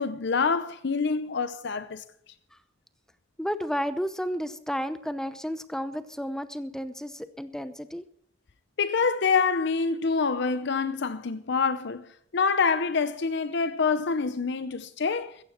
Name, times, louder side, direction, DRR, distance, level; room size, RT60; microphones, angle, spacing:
voice 1, 0.0-2.0 8.8-12.0 12.3-15.4, left 5 dB, 60° left, 0.7 m, -26 dB
voice 2, 3.4-8.0, equal, 5° left, 0.8 m, -32 dB
15.5 x 14.5 x 4.4 m
head